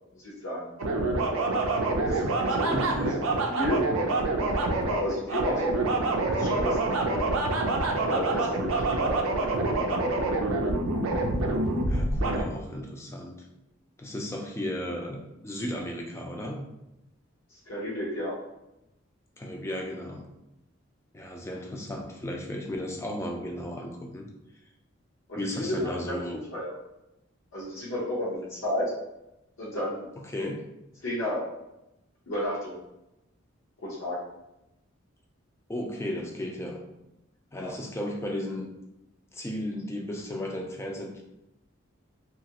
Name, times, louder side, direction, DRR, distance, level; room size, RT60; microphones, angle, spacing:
voice 1, 0.2-0.7 2.1-3.1 3.5-3.8 4.9-6.8 8.0-9.2 17.5-18.3 25.3-26.2 26.5-26.7 27.5-28.9 29.6-30.1 30.3-30.5 31.0-31.4 32.3-32.8 33.8-34.2 37.6-37.7, left 1 dB, 75° left, -9 dB, 0.7 m, -32 dB
sound 1, 0.8-12.4, right 2 dB, 85° right, 0.4 m, -26 dB
voice 2, 2.7-3.2 11.9-13.4 14.0-16.7 19.4-20.2 21.1-24.3 25.4-26.4 30.2-30.7 35.7-36.8 37.5-38.7 39.3-41.2, left 1 dB, 15° left, 1 dB, 0.3 m, -35 dB
2.9 x 2.4 x 2.8 m, 0.89 s
head